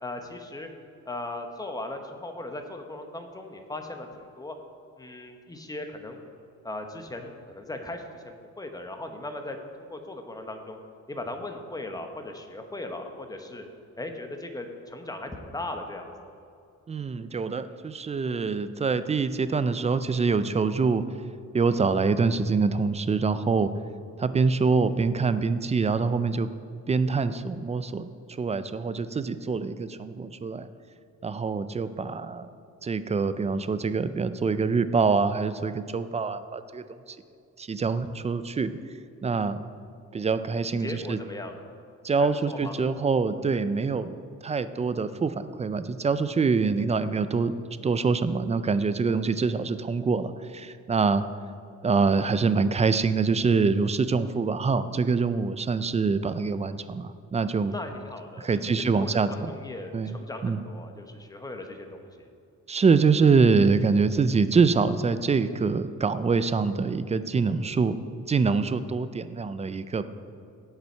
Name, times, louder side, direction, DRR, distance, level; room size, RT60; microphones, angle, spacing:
voice 1, 0.0-0.7 1.0-4.1 4.4-4.6 5.0-6.2 6.6-10.8 11.1-13.6 14.0-16.3 40.8-41.6 42.2-42.8 57.7-62.3, left 2 dB, 10° left, 4 dB, 1.0 m, -38 dB
voice 2, 16.9-21.0 21.5-23.7 24.2-26.5 26.9-30.7 31.2-32.5 32.8-37.2 37.6-38.7 39.2-39.6 40.1-41.2 42.0-47.5 47.8-51.2 51.8-57.7 58.4-59.5 59.9-60.2 60.4-60.6 62.7-68.0 68.3-70.0, right 4 dB, 20° right, 12 dB, 0.4 m, -25 dB
17.0 x 5.7 x 4.5 m, 2.5 s
cardioid pair, 125°, 31 cm